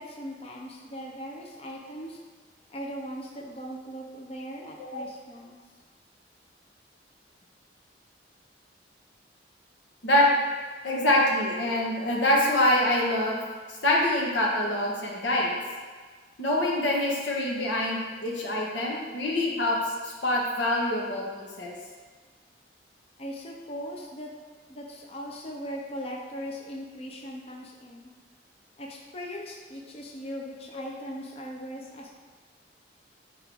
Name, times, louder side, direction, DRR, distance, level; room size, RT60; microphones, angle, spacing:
voice 1, 0.0-2.2 2.7-5.6 23.2-24.3 24.7-28.1 28.8-32.1, equal, 35° left, -1 dB, 0.6 m, -39 dB
voice 2, 10.8-13.4 13.8-15.5 16.4-21.7, left 1 dB, 90° left, -3 dB, 1.4 m, -25 dB
7.9 x 4.7 x 3.5 m, 1.5 s
head